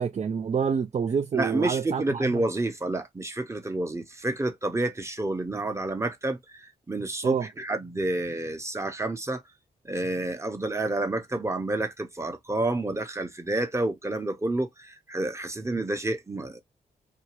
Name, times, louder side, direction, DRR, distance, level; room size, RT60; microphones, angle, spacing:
voice 1, 0.0-2.3 7.2-7.5, right 6 dB, 45° right, 0.4 m, -27 dB
voice 2, 1.3-9.4 9.8-16.6, right 2 dB, 15° right, 0.9 m, -29 dB
2.7 x 2.3 x 3.0 m
cardioid pair, 60°, 16 cm